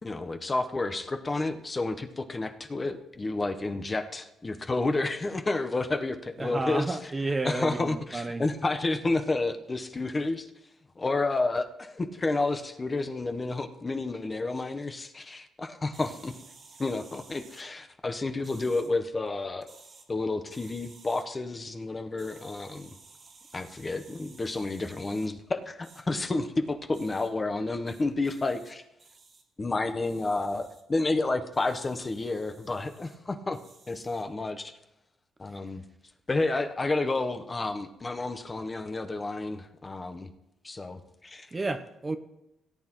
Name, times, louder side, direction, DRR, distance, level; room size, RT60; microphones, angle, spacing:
voice 1, 0.0-7.0 7.4-10.5 11.0-16.3 16.8-19.7 20.1-22.9 23.5-28.8 29.6-33.6 33.9-34.7 35.4-35.8 36.3-40.3 40.6-41.5, left 2 dB, 25° left, 0.9 m, -30 dB
voice 2, 6.4-8.4 41.5-42.2, right 2 dB, 25° right, 0.6 m, -31 dB
sound 1, 15.9-17.6 18.4-18.9 19.6-20.1 20.5-21.2 22.2-25.3 25.8-26.0 26.9-27.3 27.9-28.7 29.0-29.4 30.0-30.8 31.5-33.2 33.5-34.3, right 4 dB, 50° right, 2.0 m, -54 dB
17.5 x 8.7 x 3.0 m
cardioid pair, 90°, 0 cm